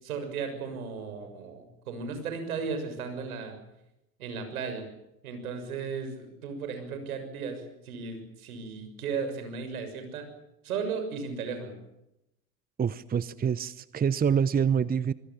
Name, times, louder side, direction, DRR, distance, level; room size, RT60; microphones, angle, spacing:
voice 1, 0.0-3.6 4.2-4.9 5.2-10.3 10.6-11.8, right 5 dB, 80° right, 7 dB, 6.9 m, -35 dB
voice 2, 12.8-15.1, right 7 dB, 20° right, 18 dB, 0.9 m, -26 dB
25.5 x 22.0 x 7.4 m, 0.86 s
hypercardioid pair, 75°, 43 cm